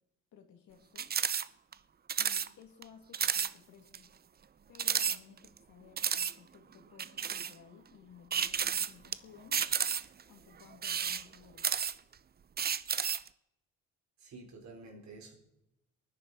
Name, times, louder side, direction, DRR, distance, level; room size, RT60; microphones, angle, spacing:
voice 1, 0.3-1.1 2.2-4.1 4.7-9.6 10.3-11.7, left 8 dB, 75° left, 2.3 m, -57 dB
Camera Flashing, 1.0-1.5 1.7-1.8 2.1-2.5 2.8-2.9 3.1-3.5 3.9-4.0 4.8-5.6 6.0-6.3 7.0-7.5 8.3-9.1 9.5-10.2 10.7-12.1 12.6-13.3, right 7 dB, 30° right, 0.6 m, -31 dB
voice 2, 14.2-15.4, right 3 dB, 65° right, 4.2 m, -50 dB
23.0 x 9.9 x 4.1 m
cardioid pair, 90°, 30 cm